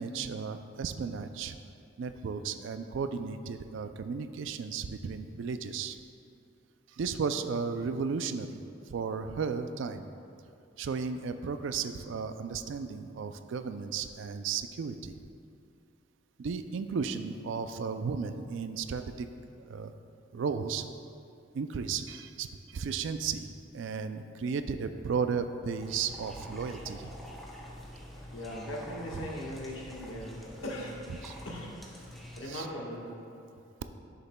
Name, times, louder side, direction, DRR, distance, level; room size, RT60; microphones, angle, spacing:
voice 1, 0.0-1.6 2.0-6.0 6.9-8.6 8.9-10.0 10.8-15.1 16.4-19.3 19.5-19.9 20.3-20.9 21.5-27.1 31.2-31.3 32.5-32.7, right 5 dB, 65° right, 9 dB, 0.3 m, -34 dB
sound 1, 25.8-32.4, equal, ahead, 0.6 m, -46 dB
voice 2, 27.7-31.0 31.4-31.7 32.4-33.1, left 1 dB, 70° left, -2 dB, 1.3 m, -40 dB
11.5 x 6.7 x 2.2 m, 2.5 s
head